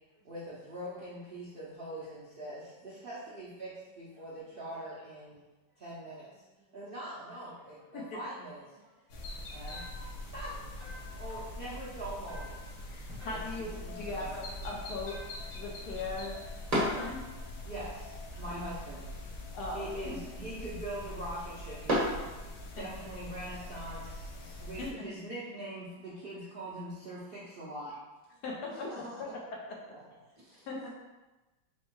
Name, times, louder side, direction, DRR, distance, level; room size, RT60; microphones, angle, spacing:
voice 1, 0.2-5.4 5.8-6.3 6.7-8.8 9.5-10.5 11.1-12.5 13.8-14.4 17.6-19.1 19.7-22.1 22.7-27.9 29.9-30.0, right 1 dB, 75° right, -9 dB, 0.5 m, -43 dB
voice 2, 7.5-7.9 8.7-9.6 10.1-10.4 11.0-11.6 12.7-13.2 13.9-14.2 15.6-16.1 18.3-18.4 22.4-22.9 24.0-24.6 26.5-26.6 27.5-27.7 28.7-29.4 30.4-30.7, equal, 55° right, -5 dB, 1.2 m, -54 dB
sound 1, 9.1-24.9, left 1 dB, 85° left, 1.5 m, -43 dB
sound 2, 9.7-10.2 10.8-11.3 12.3-12.8 13.2-13.7 15.1-15.6 16.9-17.4, equal, 15° left, 0.5 m, -51 dB
voice 3, 12.9-15.2 15.5-16.4 16.7-17.2 18.5-18.6 19.5-20.2 22.8-22.9 24.8-25.1 28.4-28.8 29.7-29.8 30.7-30.9, left 3 dB, 65° left, -2 dB, 1.2 m, -39 dB
sound 3, 12.9-23.0, equal, 20° right, 1.2 m, -39 dB
4.4 x 2.2 x 4.5 m, 1.1 s
omnidirectional pair, 2.1 m